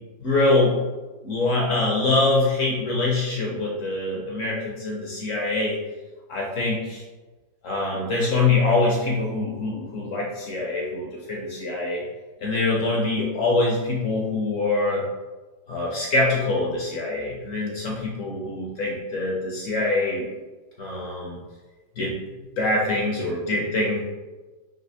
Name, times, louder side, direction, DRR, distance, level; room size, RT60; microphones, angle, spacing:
voice 1, 0.2-0.7 1.2-5.8 6.3-7.0 7.6-12.0 12.4-15.0 15.7-20.3 20.8-21.4 22.0-22.2 22.6-24.0, left 2 dB, 60° left, -2 dB, 0.8 m, -24 dB
4.2 x 2.9 x 3.3 m, 1.2 s
omnidirectional pair, 2.1 m